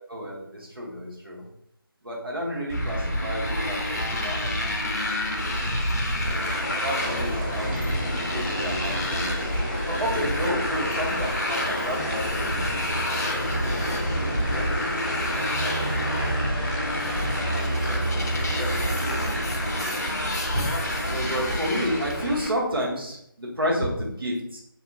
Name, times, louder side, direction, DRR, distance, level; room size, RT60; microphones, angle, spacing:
voice 1, 0.0-1.4 2.0-4.9 6.8-7.7 8.1-9.5 9.9-16.3 17.0-17.6 17.9-19.9 20.5-20.6 21.1-24.6, equal, 75° right, -4 dB, 1.1 m, -32 dB
Motorcycle, 2.7-22.5, left 1 dB, 45° left, 0.6 m, -28 dB
sound 1, 6.2-22.3, equal, 25° left, 1.1 m, -34 dB
sound 2, 11.9-20.2, right 1 dB, 20° right, 0.7 m, -32 dB
2.7 x 2.2 x 3.8 m, 0.73 s
figure-of-eight pair, 160°, 12 cm